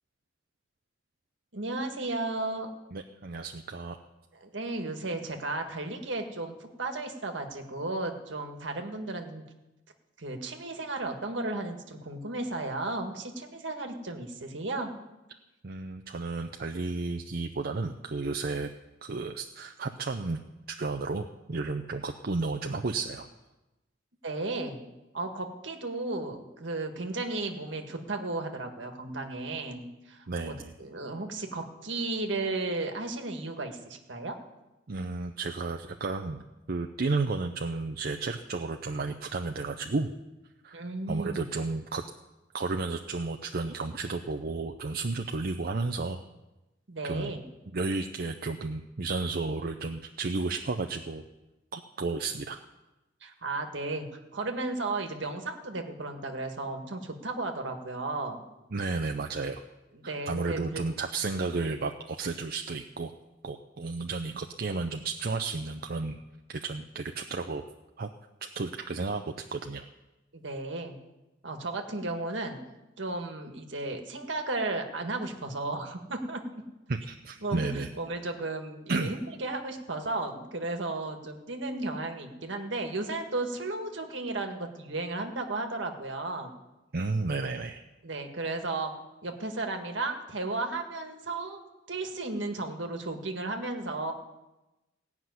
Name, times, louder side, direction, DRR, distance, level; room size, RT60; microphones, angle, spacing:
voice 1, 1.5-2.7 4.3-9.4 10.2-14.9 24.2-24.8 25.1-34.4 40.7-41.4 46.9-47.4 53.2-54.1 54.3-58.4 59.9-60.8 70.3-71.0 71.4-72.6 73.0-76.6 77.4-86.6 88.0-88.9 89.2-94.1, right 2 dB, 70° right, 4 dB, 1.7 m, -34 dB
voice 2, 2.9-4.0 15.6-18.7 19.0-20.4 20.7-23.3 30.3-30.7 34.9-40.1 40.6-40.8 41.1-42.0 42.5-46.2 47.0-47.3 47.7-51.2 51.7-52.6 58.7-59.6 60.0-63.1 63.4-66.2 66.5-67.6 68.0-68.1 68.4-69.9 76.9-77.9 78.9-79.1 86.9-87.8, right 3 dB, 55° right, 5 dB, 0.6 m, -32 dB
17.0 x 6.0 x 9.5 m, 1.0 s
head